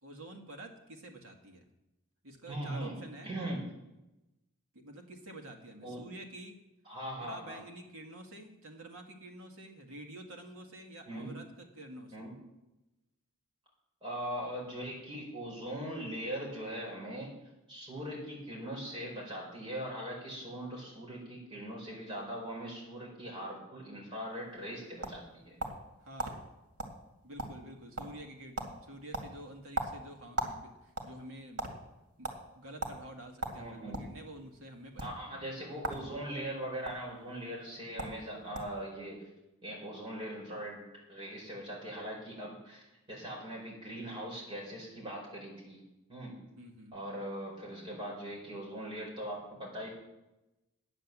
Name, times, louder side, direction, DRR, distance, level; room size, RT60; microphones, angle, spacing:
voice 1, 0.0-1.6 2.2-3.3 4.7-6.6 7.2-12.2 26.0-26.4 27.2-31.6 32.2-35.4 46.6-47.0, right 1 dB, 70° right, 2 dB, 1.9 m, -49 dB
voice 2, 2.5-3.0 3.2-3.6 5.8-6.0 6.8-7.6 11.1-11.3 12.1-12.3 14.0-17.3 17.7-25.6 33.6-34.1 35.0-39.2 39.6-40.8 41.1-45.8 46.1-46.3 46.9-49.9, right 1 dB, 25° right, -3 dB, 4.8 m, -40 dB
sound 1, 24.4-25.9 26.2-26.3 26.8-27.0 27.2-27.7 28.0-28.3 28.6-28.7 29.1-30.6 30.9-31.7 32.2-32.4 32.8-33.0 33.4-34.1 34.9-35.1 35.8-36.0 36.3-36.9 37.7-37.8 38.0-38.2 38.5-38.8, right 2 dB, 85° right, 2.3 m, -37 dB
9.5 x 9.0 x 7.4 m, 0.96 s
head